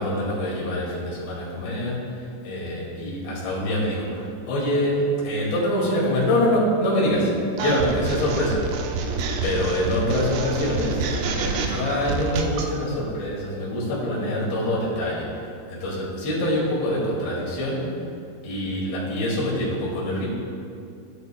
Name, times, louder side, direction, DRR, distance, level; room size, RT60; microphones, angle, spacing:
voice 1, 0.0-8.6 8.9-9.1 9.4-18.0 18.4-20.3, left 1 dB, 85° left, -5 dB, 4.4 m, -25 dB
sound 1, 7.6-12.7, right 4 dB, 85° right, 2.0 m, -28 dB
15.0 x 10.5 x 2.2 m, 2.5 s
omnidirectional pair, 5.0 m